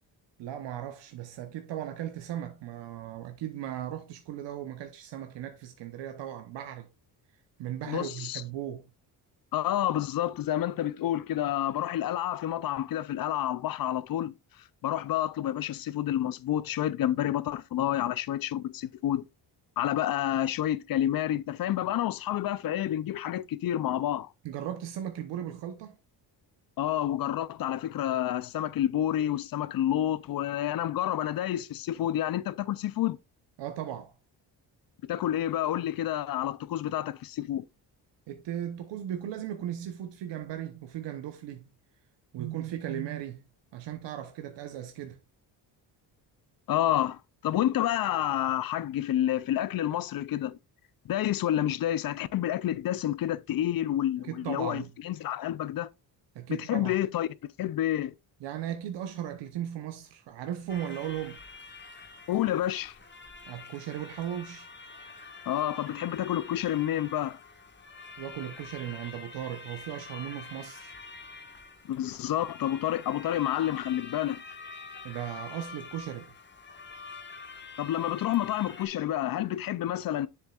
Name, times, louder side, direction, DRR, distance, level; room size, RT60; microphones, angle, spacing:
voice 1, 0.4-6.9 7.6-8.9 24.4-26.0 33.6-34.1 38.3-41.7 42.3-43.4 43.7-45.2 54.3-54.9 56.3-57.0 58.4-61.4 63.5-64.7 68.2-70.9 75.0-76.3, right 11 dB, 80° right, 1.0 m, -37 dB
voice 2, 7.9-8.4 9.5-14.4 14.8-19.2 19.8-24.3 26.8-33.2 35.1-37.6 46.7-50.6 51.0-55.9 56.5-57.3 57.6-58.1 62.3-63.0 65.5-67.4 71.9-74.4 77.8-80.3, left 12 dB, 55° left, 0.5 m, -29 dB
sound 1, 60.7-78.9, left 4 dB, 25° left, 1.5 m, -46 dB
7.3 x 7.0 x 2.4 m
cardioid pair, 105°, 43 cm